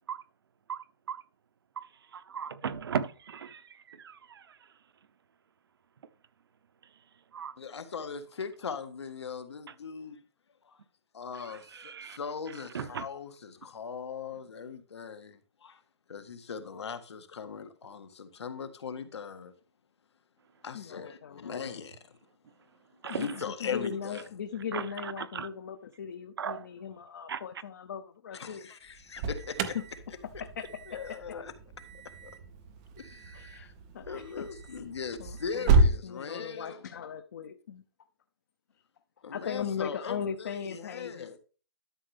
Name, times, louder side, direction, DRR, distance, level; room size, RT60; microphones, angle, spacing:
voice 1, 0.7-1.2 1.8-4.8 6.0-6.1 6.8-7.6 9.7-9.8 11.3-12.2 12.5-13.1 23.0-23.4 24.7-25.5 26.4-26.7 27.3-27.4 34.1-34.2, right 7 dB, 60° right, 0.9 m, -38 dB
voice 2, 7.6-10.2 10.7-10.8 11.1-15.8 16.1-19.5 20.6-22.0 23.2-24.2 28.3-29.8 30.9-31.5 32.2-32.3 33.0-33.7 34.0-36.8 39.2-41.4, left 6 dB, 80° left, 1.7 m, -39 dB
voice 3, 20.7-21.6 23.1-28.7 29.7-29.8 30.4-30.7 31.1-31.4 33.3-34.5 34.8-34.9 35.2-37.8 39.3-41.4, left 7 dB, 40° left, 0.7 m, -39 dB
Alarm, 28.9-36.0, right 3 dB, 15° right, 0.4 m, -30 dB
12.0 x 6.5 x 3.5 m
hypercardioid pair, 175°, 14 cm